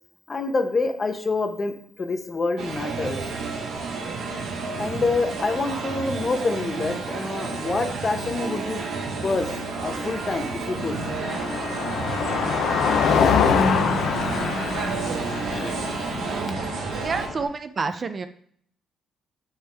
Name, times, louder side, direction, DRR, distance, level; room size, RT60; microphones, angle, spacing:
voice 1, 0.3-3.2 4.8-8.8 9.2-9.5 9.8-11.0 15.5-15.8, left 3 dB, 35° left, 7 dB, 0.8 m, -26 dB
sound 1, 2.6-17.3, right 4 dB, 75° right, 1.0 m, -31 dB
Car passing by, 9.2-17.4, left 6 dB, 75° left, 0.6 m, -25 dB
voice 2, 16.3-16.6 17.0-18.3, right 4 dB, 40° right, 10 dB, 0.4 m, -29 dB
8.0 x 3.5 x 3.4 m, 0.62 s
cardioid pair, 90°, 0 cm